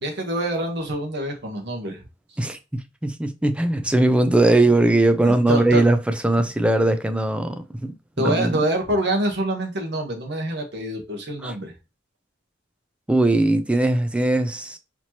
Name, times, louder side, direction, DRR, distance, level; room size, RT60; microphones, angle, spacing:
voice 1, 0.0-2.0 5.2-5.8 8.2-11.7, right 1 dB, 60° right, 1.2 m, -26 dB
voice 2, 2.4-8.6 11.4-11.6 13.1-14.8, right 2 dB, 5° right, 0.3 m, -20 dB
4.3 x 2.9 x 2.9 m
head